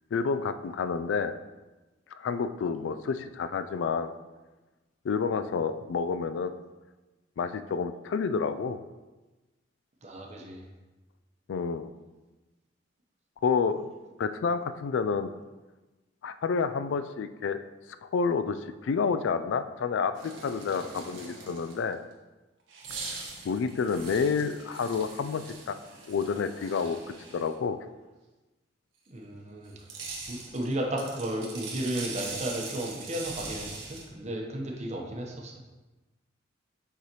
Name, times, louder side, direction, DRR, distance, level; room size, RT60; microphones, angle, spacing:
voice 1, 0.1-1.3 2.2-4.1 5.0-6.6 7.4-8.8 11.5-11.9 13.4-13.9 14.2-15.3 16.2-17.6 18.0-22.0 23.4-25.8 26.1-27.0 27.3-27.8, left 5 dB, 75° left, 10 dB, 0.3 m, -29 dB
voice 2, 10.0-10.6 29.1-29.7 30.3-35.5, right 1 dB, 35° right, 0 dB, 0.9 m, -34 dB
sound 1, 20.1-21.9 22.7-27.5 29.7-34.1, right 4 dB, 80° right, 1.3 m, -41 dB
6.6 x 4.8 x 3.0 m, 1.1 s
head